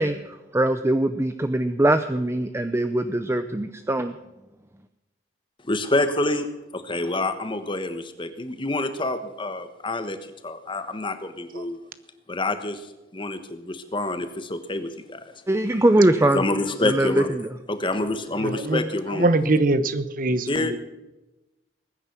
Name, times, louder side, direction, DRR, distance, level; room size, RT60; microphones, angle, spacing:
voice 1, 0.0-4.1 15.5-16.5 16.8-17.6, right 1 dB, 15° right, 9 dB, 0.6 m, -22 dB
voice 2, 5.7-6.5 6.7-10.2 10.4-11.8 12.3-12.8 13.1-15.2 16.3-17.3 17.7-19.3 20.5-20.7, left 2 dB, 25° left, 9 dB, 1.3 m, -27 dB
voice 3, 18.4-18.8 19.1-20.8, right 2 dB, 50° right, 12 dB, 1.0 m, -23 dB
20.5 x 9.9 x 6.0 m, 1.0 s
head